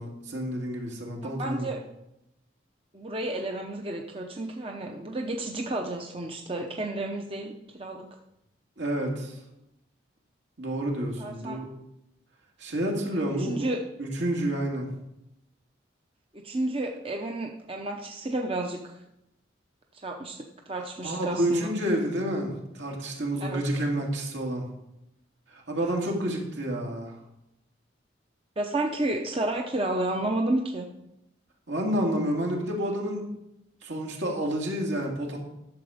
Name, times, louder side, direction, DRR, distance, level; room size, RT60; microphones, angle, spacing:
voice 1, 0.0-1.7 8.8-9.4 10.6-11.6 12.6-13.7 14.0-14.9 21.0-24.7 25.5-27.2 31.7-33.3 33.8-35.4, right 1 dB, 70° right, -1 dB, 2.6 m, -29 dB
voice 2, 1.2-1.8 2.9-8.1 11.2-11.6 13.1-13.8 16.3-18.8 19.9-21.7 23.4-23.6 25.8-26.0 28.6-30.9, right 2 dB, 30° right, 2 dB, 0.8 m, -31 dB
12.5 x 7.0 x 5.1 m, 0.86 s
head